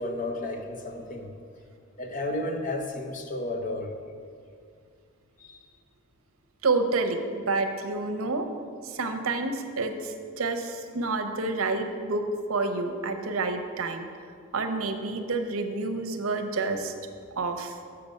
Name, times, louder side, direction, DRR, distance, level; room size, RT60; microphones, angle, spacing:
voice 1, 0.0-1.3 2.0-4.0 5.4-5.6, left 1 dB, 35° left, 4 dB, 0.6 m, -32 dB
voice 2, 6.6-8.5 8.8-12.2 12.5-14.1 14.5-16.9 17.4-17.7, right 3 dB, 80° right, 6 dB, 0.7 m, -29 dB
6.8 x 6.7 x 5.3 m, 2.2 s
head